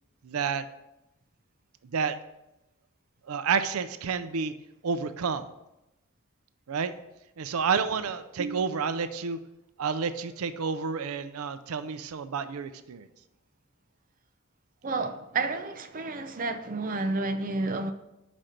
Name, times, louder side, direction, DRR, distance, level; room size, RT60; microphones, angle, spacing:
voice 1, 0.2-0.6 1.9-2.2 3.3-4.5 4.8-5.5 6.7-6.9 7.4-9.4 9.8-13.1, right 5 dB, 85° right, 0.5 m, -29 dB
voice 2, 14.8-17.9, right 3 dB, 40° right, 0.5 m, -30 dB
5.8 x 5.1 x 6.4 m
head